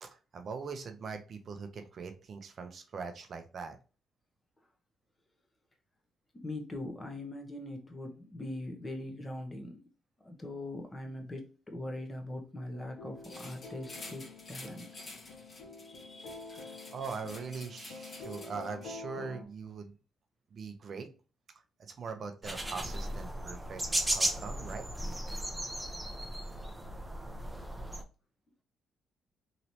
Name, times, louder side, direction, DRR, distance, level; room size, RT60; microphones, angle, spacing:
voice 1, 0.0-3.8 16.5-20.0 20.5-21.1 21.8-23.8 24.1-24.9, right 5 dB, 50° right, 7 dB, 0.5 m, -42 dB
voice 2, 6.3-9.8 10.2-14.9 15.9-16.9, left 1 dB, 20° left, 3 dB, 0.9 m, -42 dB
sound 1, 12.7-19.4, left 3 dB, 85° left, 0.7 m, -47 dB
sound 2, 13.2-18.9, left 2 dB, 40° left, 1.2 m, -50 dB
sound 3, 22.4-28.0, right 1 dB, 10° right, 0.6 m, -35 dB
3.0 x 2.9 x 2.7 m, 0.34 s
cardioid pair, 90°, 0 cm